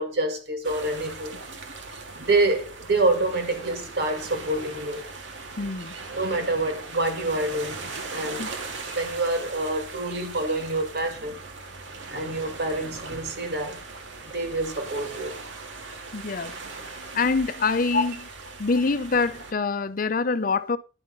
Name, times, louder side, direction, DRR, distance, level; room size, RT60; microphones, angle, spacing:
voice 1, 0.0-1.4 2.2-5.1 6.1-8.5 8.9-11.4 12.1-13.8 14.3-15.4 16.9-17.1 17.9-18.0, right 2 dB, 60° right, 2.2 m, -27 dB
sound 1, 0.6-19.5, right 3 dB, 85° right, 1.8 m, -39 dB
voice 2, 5.6-5.9 8.4-8.5 16.1-16.5 17.1-18.1 18.6-20.8, left 4 dB, 50° left, 0.6 m, -25 dB
11.0 x 5.7 x 3.9 m
head